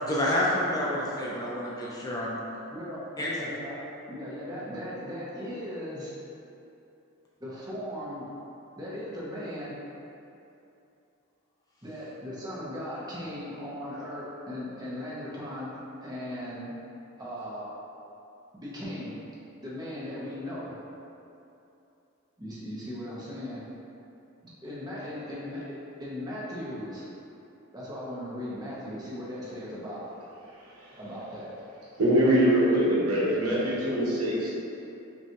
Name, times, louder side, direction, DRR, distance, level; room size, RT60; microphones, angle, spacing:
voice 1, 0.0-2.4 3.2-3.3, left 1 dB, 15° left, -5 dB, 0.4 m, -28 dB
voice 2, 2.7-3.8 4.1-6.1 7.4-8.3 8.8-9.8 11.8-16.7 17.2-17.7 18.5-19.2 19.6-20.8 22.4-23.6 24.6-25.6 26.0-27.1 27.7-30.0 30.9-31.5, equal, 20° right, -8 dB, 0.7 m, -37 dB
voice 3, 30.6-31.0 32.0-34.5, right 1 dB, 90° right, -6 dB, 0.9 m, -23 dB
5.4 x 2.3 x 2.9 m, 2.8 s
head